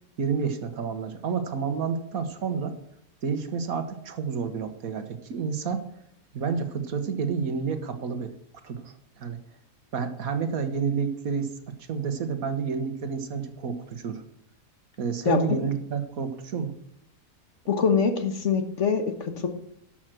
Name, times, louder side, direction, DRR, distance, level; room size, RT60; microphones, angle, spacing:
voice 1, 0.2-2.8 3.2-5.8 6.3-8.3 8.6-9.4 9.9-14.2 15.0-16.7, right 6 dB, 75° right, 8 dB, 1.6 m, -30 dB
voice 2, 17.7-19.5, left 6 dB, 55° left, 6 dB, 1.5 m, -24 dB
12.0 x 6.3 x 7.5 m, 0.74 s
omnidirectional pair, 1.5 m